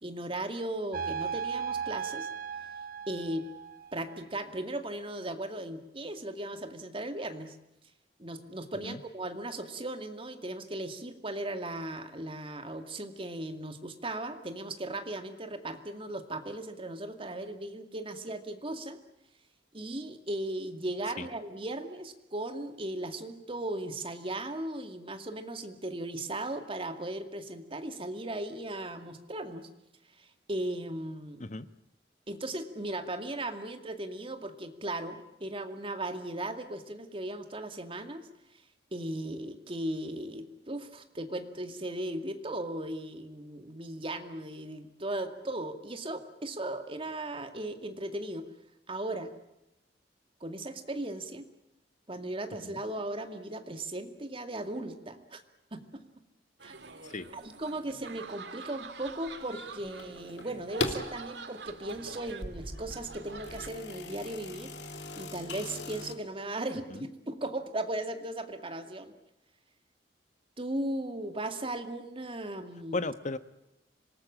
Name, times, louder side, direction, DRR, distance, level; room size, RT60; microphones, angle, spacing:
voice 1, 0.0-2.3 3.1-3.5 3.9-7.6 8.2-19.0 19.7-29.7 30.2-31.4 32.3-38.3 38.9-48.5 48.9-49.3 50.4-51.4 52.1-55.4 55.7-56.0 56.6-56.8 57.3-64.7 65.2-69.1 70.6-73.1, right 1 dB, 30° right, 7 dB, 2.3 m, -37 dB
sound 1, 0.9-4.1, right 7 dB, 50° right, 1.2 m, -36 dB
sound 2, 56.6-63.7, right 3 dB, 70° right, 2.2 m, -45 dB
sound 3, 60.0-61.1 61.7-66.2, left 2 dB, 70° left, 2.8 m, -39 dB
voice 2, 72.9-73.4, left 2 dB, 45° left, 13 dB, 1.2 m, -34 dB
26.5 x 19.5 x 8.8 m, 0.90 s
head